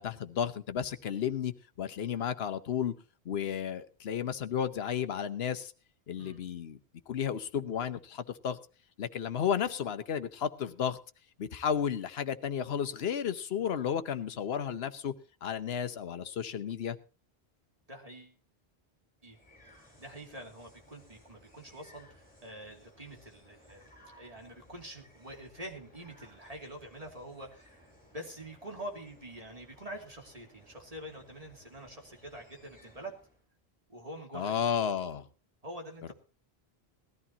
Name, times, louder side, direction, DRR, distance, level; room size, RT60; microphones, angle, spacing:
voice 1, 0.0-2.9 3.2-5.7 6.1-6.8 7.1-8.6 9.0-11.0 11.4-15.1 15.4-17.0 34.3-35.3, left 8 dB, 75° left, 10 dB, 1.1 m, -33 dB
voice 2, 17.9-18.4 19.2-19.4 20.0-23.8 24.1-27.8 28.1-33.2 33.9-34.8 35.6-36.1, right 1 dB, 35° right, 2 dB, 2.7 m, -46 dB
sound 1, 19.2-33.4, equal, 10° left, 5.6 m, -60 dB
19.5 x 14.0 x 2.9 m, 0.33 s
omnidirectional pair, 1.1 m